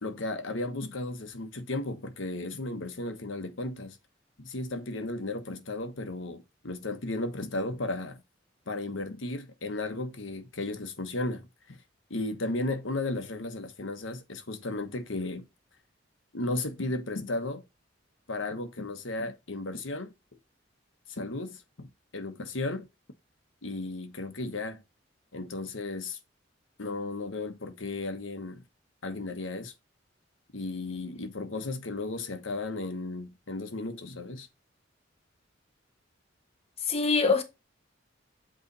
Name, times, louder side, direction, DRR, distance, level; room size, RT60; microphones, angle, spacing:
voice 1, 0.0-4.0 4.4-8.2 8.7-11.8 12.1-15.5 16.3-17.6 18.3-20.1 21.1-22.9 23.6-24.8 25.3-26.2 26.8-28.6 29.0-29.7 30.5-34.5, left 2 dB, 85° left, 1.2 m, -34 dB
voice 2, 30.7-31.1 36.9-37.4, left 4 dB, 30° left, 1.0 m, -26 dB
8.1 x 3.4 x 4.1 m
head